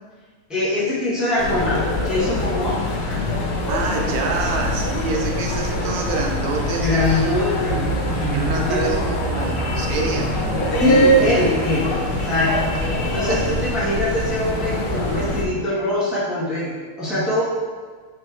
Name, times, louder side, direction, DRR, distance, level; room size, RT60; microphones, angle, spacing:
voice 1, 0.5-2.8 3.1-3.2 6.8-9.1 10.8-12.5 13.1-16.7 17.0-17.4, left 1 dB, ahead, -9 dB, 1.3 m, -23 dB
sound 1, 1.4-15.4, equal, 80° left, 2.0 m, -23 dB
voice 2, 3.7-7.3 8.3-10.6 12.7-12.9 13.3-13.4, right 4 dB, 65° right, 1 dB, 0.9 m, -27 dB
sound 2, 4.0-6.5 9.5-10.6, right 2 dB, 45° right, 1.8 m, -41 dB
5.1 x 4.6 x 4.4 m, 1.5 s
omnidirectional pair, 2.4 m